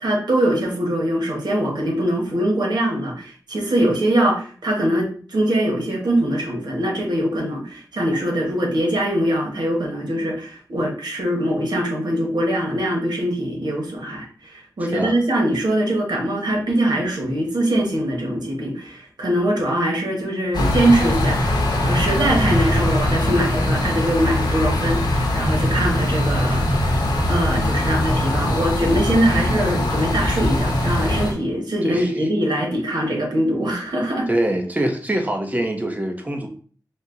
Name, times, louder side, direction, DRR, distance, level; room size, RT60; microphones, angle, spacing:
voice 1, 0.0-26.9 27.3-34.3, right 1 dB, 80° right, 0 dB, 1.2 m, -22 dB
voice 2, 14.8-15.2 31.8-32.1 34.3-36.5, right 1 dB, 20° right, 3 dB, 0.8 m, -24 dB
sound 1, 20.5-31.3, left 1 dB, 90° left, 0.8 m, -21 dB
4.3 x 2.2 x 3.8 m, 0.44 s
wide cardioid pair, 75°, 7 cm